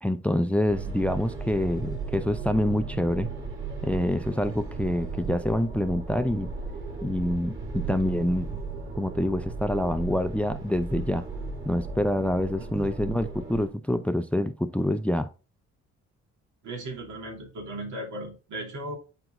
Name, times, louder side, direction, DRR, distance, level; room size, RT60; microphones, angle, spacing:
voice 1, 0.0-3.3 3.8-6.5 7.0-8.6 8.9-11.3 11.7-15.3, left 1 dB, 5° left, 0.5 m, -26 dB
sound 1, 0.7-13.7, right 4 dB, 40° right, 3.4 m, -36 dB
voice 2, 16.6-19.0, right 1 dB, 75° right, 3.0 m, -36 dB
10.0 x 4.5 x 2.6 m
cardioid pair, 90°, 30 cm